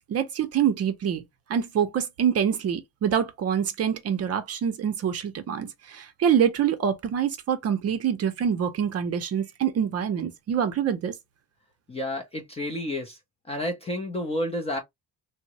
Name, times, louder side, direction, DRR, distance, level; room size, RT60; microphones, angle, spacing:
voice 1, 0.1-1.2 1.5-11.1, right 8 dB, 40° right, 0.6 m, -25 dB
voice 2, 11.9-13.2 13.5-14.8, left 1 dB, 15° left, 0.4 m, -30 dB
3.5 x 2.0 x 2.8 m
cardioid pair, 170°, 38 cm